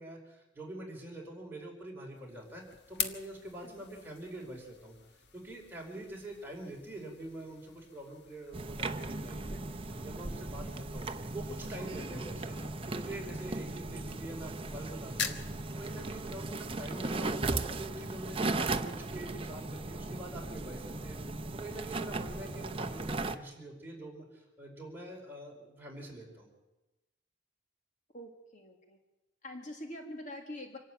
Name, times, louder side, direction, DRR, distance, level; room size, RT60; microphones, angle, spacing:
voice 1, 0.0-4.9 5.3-9.6 10.0-12.6 12.8-21.2 21.5-26.5, right 1 dB, 10° right, -2 dB, 4.9 m, -45 dB
sound 1, 2.1-19.1, left 7 dB, 65° left, 1.5 m, -46 dB
sound 2, 8.5-23.4, right 2 dB, 30° right, 0.8 m, -37 dB
voice 2, 28.1-29.0 29.4-30.8, left 1 dB, 45° left, 3 dB, 2.1 m, -45 dB
26.0 x 12.0 x 9.1 m, 1.0 s
head